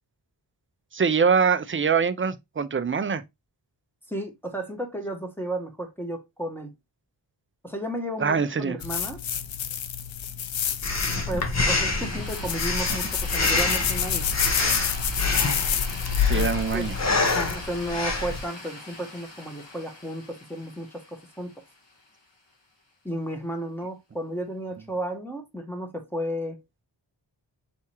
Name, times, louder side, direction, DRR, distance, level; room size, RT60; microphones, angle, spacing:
voice 1, 0.9-3.2 8.2-8.8 16.2-16.9, right 6 dB, 30° right, 0.5 m, -23 dB
voice 2, 4.1-6.7 7.6-9.2 11.3-14.3 16.3-16.5 16.7-16.9 17.2-21.5 23.0-26.6, right 1 dB, 5° left, 1.2 m, -33 dB
sound 1, 8.8-17.6, left 9 dB, 85° left, 0.7 m, -29 dB
Breathing, 10.8-18.4, left 2 dB, 35° left, 1.0 m, -27 dB
sound 2, 12.0-22.3, left 2 dB, 70° left, 2.0 m, -41 dB
4.3 x 3.5 x 3.0 m
wide cardioid pair, 85°, 45 cm